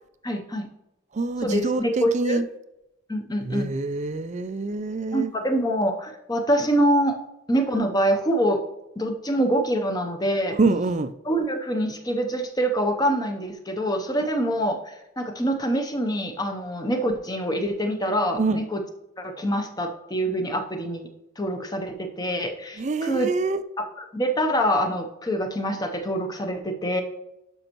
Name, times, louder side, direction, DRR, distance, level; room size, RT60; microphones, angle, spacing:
voice 1, 0.2-0.7 1.4-2.4 3.1-3.7 5.1-7.2 7.5-8.6 9.0-10.6 11.2-18.8 19.2-21.1 21.4-23.3 23.8-27.0, equal, 20° left, 5 dB, 0.6 m, -25 dB
voice 2, 1.1-2.5 3.4-5.3 10.6-11.1 18.3-18.6 22.8-23.6, right 3 dB, 35° right, 11 dB, 0.4 m, -25 dB
12.0 x 5.3 x 3.0 m, 0.89 s
head